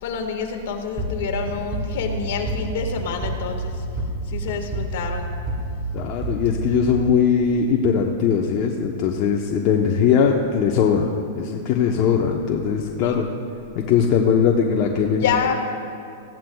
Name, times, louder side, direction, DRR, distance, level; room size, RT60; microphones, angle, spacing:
voice 1, 0.0-3.8 4.3-5.3 13.0-13.1 15.2-15.5, left 6 dB, 65° left, 3 dB, 1.7 m, -27 dB
sound 1, 1.0-7.6, right 2 dB, 20° right, 2.8 m, -29 dB
voice 2, 5.9-11.1 11.3-13.3 13.8-15.2, left 7 dB, 45° left, 0 dB, 0.9 m, -20 dB
19.5 x 14.5 x 2.3 m, 2.5 s
hypercardioid pair, 125°, 0 cm